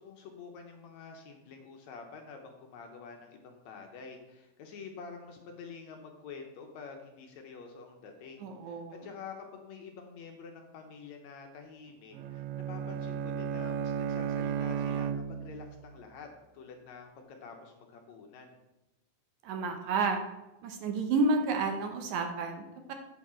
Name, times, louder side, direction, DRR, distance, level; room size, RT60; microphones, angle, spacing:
voice 1, 0.0-16.3 16.5-17.1 17.4-18.6, left 5 dB, 70° left, 3 dB, 2.0 m, -48 dB
voice 2, 8.4-9.0 19.4-20.2 20.6-22.9, right 3 dB, 75° right, 5 dB, 2.1 m, -30 dB
Bowed string instrument, 12.1-15.8, right 7 dB, 90° right, 2.1 m, -34 dB
8.3 x 7.0 x 4.3 m, 0.97 s
omnidirectional pair, 3.7 m